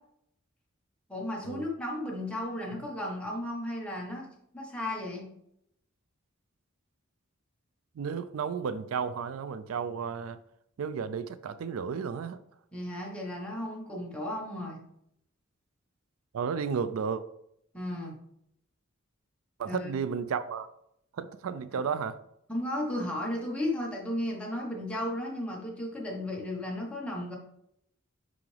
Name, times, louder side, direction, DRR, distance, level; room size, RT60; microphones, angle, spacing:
voice 1, 1.1-4.3 4.5-5.3 12.7-14.8 17.7-18.2 19.6-19.9 21.7-21.8 22.5-27.4, left 1 dB, 5° left, 1.2 m, -34 dB
voice 2, 8.0-10.4 10.8-12.4 16.3-17.2 19.6-20.7 21.2-22.2, right 6 dB, 85° right, 0.4 m, -33 dB
5.8 x 5.0 x 3.3 m
head